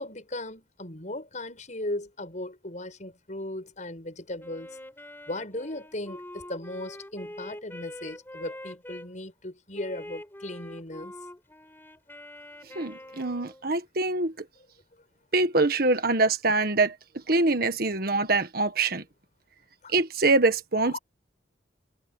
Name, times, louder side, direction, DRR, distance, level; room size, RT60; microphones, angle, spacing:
voice 1, 0.0-4.8 5.3-11.1 19.8-19.9 20.8-21.0, left 1 dB, 45° left, 6.5 m, -37 dB
Wind instrument woodwind instrument, 4.4-9.1 9.7-13.7, left 1 dB, 10° left, 5.7 m, -44 dB
voice 2, 12.8-14.5 15.3-17.0 17.3-19.0 19.9-21.0, right 3 dB, 55° right, 1.6 m, -24 dB
head